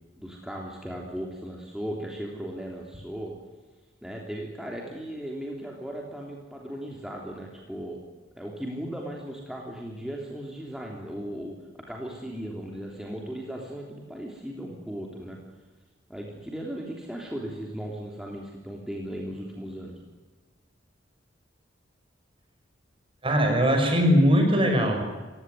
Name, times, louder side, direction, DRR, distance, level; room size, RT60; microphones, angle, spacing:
voice 1, 0.1-3.3 4.0-8.0 8.4-11.6 11.9-15.4 16.1-20.0, equal, 5° right, -1 dB, 3.4 m, -37 dB
voice 2, 23.2-25.0, equal, 30° right, 4 dB, 6.2 m, -20 dB
29.5 x 16.5 x 9.5 m, 1.3 s
head